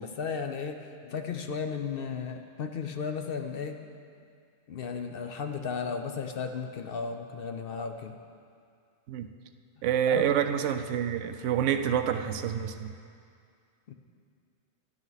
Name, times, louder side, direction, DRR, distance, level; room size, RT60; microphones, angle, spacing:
voice 1, 0.0-3.8 4.7-8.2 10.1-10.3 13.9-14.0, left 5 dB, 55° left, 6 dB, 0.7 m, -34 dB
voice 2, 9.8-12.9, right 9 dB, 80° right, 8 dB, 0.9 m, -27 dB
12.0 x 11.0 x 4.0 m, 2.3 s
omnidirectional pair, 1.3 m